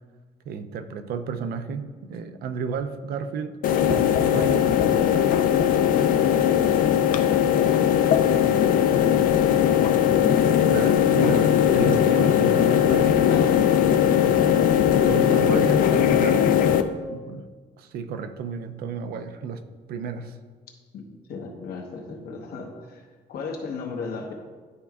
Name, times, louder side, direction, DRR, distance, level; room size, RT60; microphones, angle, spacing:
voice 1, 0.5-3.6 3.9-5.6 10.7-13.4 14.6-16.5 17.1-17.5 17.8-20.4, right 6 dB, 75° right, 8 dB, 0.5 m, -32 dB
sound 1, 3.6-16.8, left 9 dB, 60° left, 0.4 m, -19 dB
voice 2, 8.6-9.9 13.3-13.9 16.1-16.9 20.9-23.0 23.3-24.3, left 4 dB, 75° left, 2 dB, 1.0 m, -36 dB
11.0 x 4.4 x 2.4 m, 1.5 s
cardioid pair, 165°, 16 cm